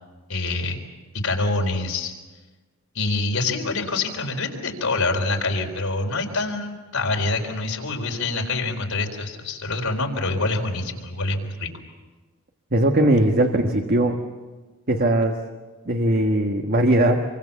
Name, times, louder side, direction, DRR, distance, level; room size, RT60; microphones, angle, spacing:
voice 1, 0.3-0.8 1.2-2.1 2.9-11.7, left 3 dB, 75° left, 2 dB, 4.2 m, -26 dB
voice 2, 12.7-14.2 14.9-15.4 15.8-17.2, right 1 dB, 45° right, 3 dB, 1.5 m, -19 dB
27.5 x 24.0 x 7.2 m, 1.3 s
head